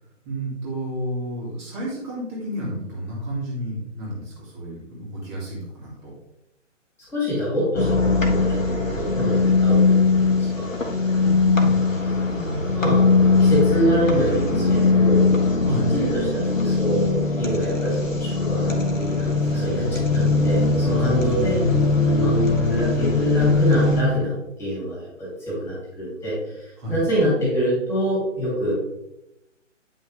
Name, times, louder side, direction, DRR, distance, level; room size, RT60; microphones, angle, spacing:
voice 1, 0.2-6.1 11.1-11.8 12.3-13.1 15.6-15.9 20.9-21.2 21.5-22.5 26.8-27.0, equal, 20° right, -5 dB, 2.4 m, -31 dB
voice 2, 7.1-10.9 12.7-15.4 15.7-22.3 22.7-24.3 24.6-28.7, equal, 5° left, -6 dB, 2.9 m, -26 dB
sound 1, 7.8-24.0, left 3 dB, 90° left, 1.5 m, -20 dB
9.2 x 5.6 x 3.3 m, 0.86 s
figure-of-eight pair, 140°, 38 cm